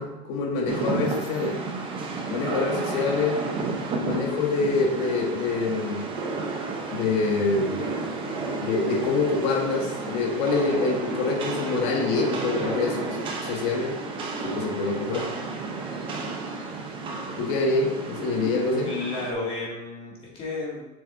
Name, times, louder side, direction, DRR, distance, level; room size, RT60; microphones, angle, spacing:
voice 1, 0.0-1.6 2.3-3.4 4.0-6.1 6.9-7.8 8.6-14.0 14.4-15.3 17.4-18.9, left 3 dB, 60° left, 2 dB, 1.4 m, -26 dB
Rain, 0.7-19.3, right 3 dB, 25° right, 0.7 m, -32 dB
voice 2, 18.8-20.8, left 3 dB, 25° left, -4 dB, 2.2 m, -32 dB
7.2 x 6.8 x 2.7 m, 0.97 s
cardioid pair, 165°, 21 cm